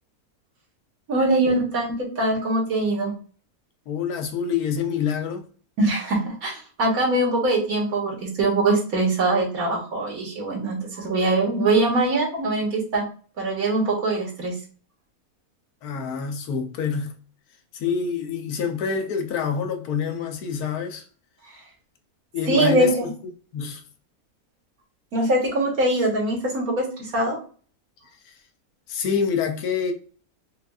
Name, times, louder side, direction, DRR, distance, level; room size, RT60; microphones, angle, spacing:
voice 1, 1.1-3.1 5.8-13.0 13.4-14.5 21.5-21.6 22.5-23.1 25.1-27.4, right 2 dB, 75° right, 1.7 m, -22 dB
voice 2, 3.9-5.4 15.8-17.1 17.7-21.0 22.3-23.1 23.5-23.8 28.3-28.4 28.9-29.9, left 6 dB, 85° left, 1.2 m, -26 dB
5.0 x 2.5 x 2.3 m
omnidirectional pair, 1.6 m